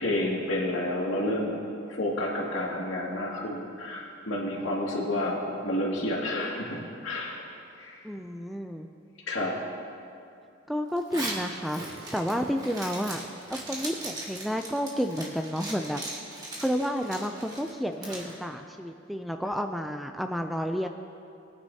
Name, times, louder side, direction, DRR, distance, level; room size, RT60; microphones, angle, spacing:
voice 1, 0.0-1.6 1.9-6.8 7.0-7.4 7.8-8.0 9.3-9.5, left 1 dB, 75° left, -3 dB, 2.2 m, -30 dB
voice 2, 8.0-8.9 10.7-13.2 13.5-16.0 16.6-20.9, equal, ahead, 5 dB, 0.3 m, -31 dB
Zipper (clothing), 11.0-18.3, right 1 dB, 20° right, 1.7 m, -39 dB
20.5 x 9.7 x 2.8 m, 2.5 s
head